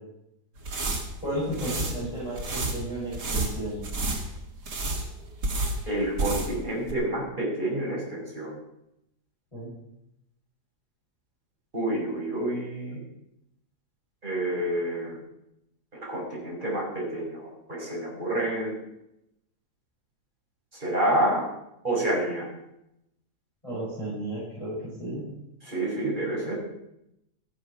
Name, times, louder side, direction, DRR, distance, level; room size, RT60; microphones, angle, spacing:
sound 1, 0.5-6.6 6.9-7.0, right 2 dB, 75° right, 2.8 m, -31 dB
voice 1, 1.2-3.8 9.5-9.7 23.6-25.3, right 1 dB, 20° left, -11 dB, 7.8 m, -33 dB
voice 2, 5.9-8.5 11.7-13.0 14.2-15.2 15.9-18.7 20.8-21.4 21.8-22.5 25.6-26.6, right 1 dB, 30° right, -4 dB, 6.1 m, -28 dB
14.5 x 11.0 x 6.1 m, 0.82 s
omnidirectional pair, 1.8 m